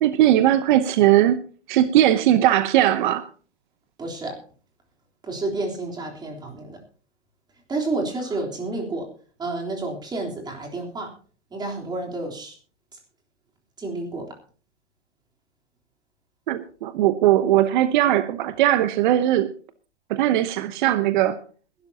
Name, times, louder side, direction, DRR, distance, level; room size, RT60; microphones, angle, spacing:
voice 1, 0.0-1.4 1.7-3.3 16.5-19.5 20.1-21.4, right 13 dB, 45° right, 0.9 m, -19 dB
voice 2, 4.0-4.3 5.2-6.8 7.7-9.1 9.4-11.1 11.5-12.5 13.8-14.3, right 2 dB, 10° right, 3.5 m, -30 dB
21.5 x 12.0 x 2.8 m
hypercardioid pair, 140°, 35 cm